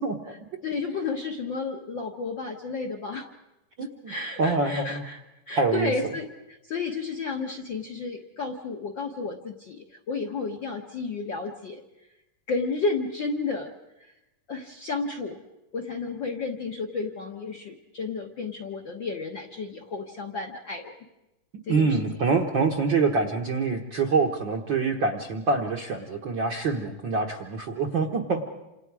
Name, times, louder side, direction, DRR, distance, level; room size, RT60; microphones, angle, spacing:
voice 1, 0.6-3.3 4.1-11.8 12.5-13.7 14.5-15.4 15.7-21.0 21.7-22.0, left 4 dB, 50° left, 2 dB, 1.4 m, -32 dB
voice 2, 3.8-4.1 4.4-5.1 5.6-5.9 21.7-28.4, right 4 dB, 50° right, 3 dB, 1.4 m, -25 dB
28.0 x 27.5 x 4.8 m, 0.96 s
omnidirectional pair, 3.7 m